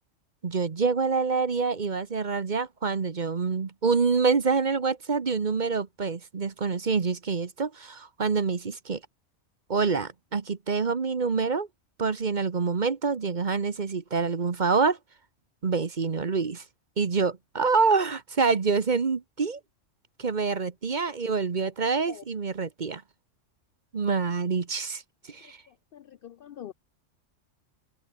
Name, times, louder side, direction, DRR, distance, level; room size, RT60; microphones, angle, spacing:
voice 1, 0.4-9.0 9.7-11.7 12.0-15.0 15.6-16.6 17.0-19.6 20.2-23.0 23.9-25.0 25.3-25.6, right 4 dB, 40° right, 1.1 m, -26 dB
voice 2, 25.9-26.7, left 10 dB, 60° left, 0.6 m, -44 dB
open air
omnidirectional pair, 1.3 m